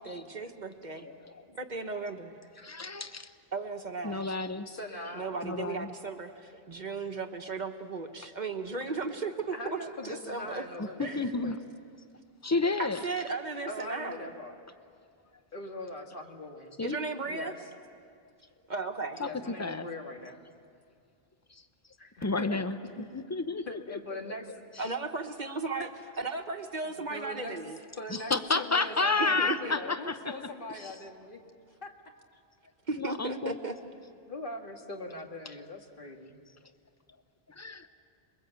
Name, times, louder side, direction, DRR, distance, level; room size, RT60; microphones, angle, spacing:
voice 1, 0.0-1.1 1.6-2.3 3.5-4.2 5.1-9.8 10.0-10.6 11.0-11.2 12.8-14.3 16.8-17.5 18.7-19.2 24.8-25.9 26.2-27.8 29.2-29.7 32.9-33.8, right 3 dB, 45° right, 5 dB, 1.3 m, -35 dB
voice 2, 1.0-1.4 2.6-3.3 4.0-4.7 5.4-5.9 10.8-11.6 12.4-13.0 16.8-17.0 19.2-19.3 19.6-19.9 21.5-21.6 22.2-24.0 24.3-24.4 28.1-30.5 30.8-30.9 32.9-33.6 37.5-37.9, left 3 dB, 15° left, 10 dB, 0.8 m, -31 dB
voice 3, 4.7-5.4 8.9-9.0 9.5-11.6 13.7-14.6 15.5-16.8 17.2-17.6 19.2-20.5 22.0-22.6 23.7-24.5 25.8-25.9 27.1-27.6 28.0-31.4 31.8-31.9 34.3-36.4, left 1 dB, 50° left, 2 dB, 2.1 m, -41 dB
27.5 x 22.5 x 8.1 m, 2.3 s
omnidirectional pair, 1.1 m